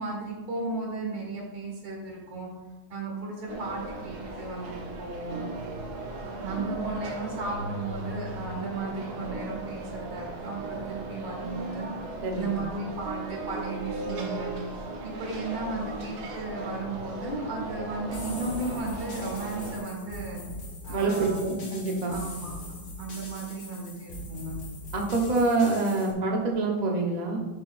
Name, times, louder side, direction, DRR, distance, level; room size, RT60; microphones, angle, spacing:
voice 1, 0.0-2.5 2.9-5.5 6.4-11.9 12.4-20.4 20.8-21.6 22.1-22.5 23.0-24.6, right 3 dB, 90° right, -2 dB, 2.8 m, -35 dB
sound 1, 3.5-19.8, right 2 dB, 55° right, 1.4 m, -37 dB
voice 2, 12.2-12.5 20.9-22.2 24.9-27.4, right 3 dB, 35° right, 0 dB, 0.7 m, -26 dB
sound 2, 18.1-26.1, left 1 dB, 55° left, 2.1 m, -41 dB
10.5 x 6.0 x 2.5 m, 1.2 s
omnidirectional pair, 2.2 m